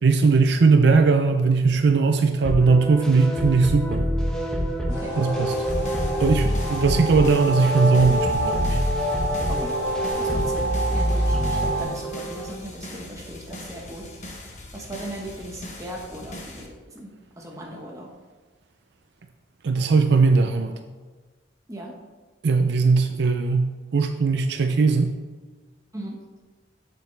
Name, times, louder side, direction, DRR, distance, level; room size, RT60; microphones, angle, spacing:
voice 1, 0.0-4.1 5.2-5.5 6.2-8.8 19.6-20.8 22.4-25.1, right 4 dB, 65° right, 6 dB, 0.4 m, -19 dB
sound 1, 2.4-12.5, equal, 5° left, 0.9 m, -26 dB
sound 2, 4.9-11.8, right 2 dB, 60° left, 2.4 m, -29 dB
sound 3, 5.5-16.7, left 1 dB, 40° left, 1.2 m, -41 dB
voice 2, 9.5-9.8 10.2-14.3 14.7-18.1 21.7-22.0 25.9-26.2, right 1 dB, 15° right, -1 dB, 1.2 m, -38 dB
7.7 x 7.5 x 3.4 m, 1.4 s
head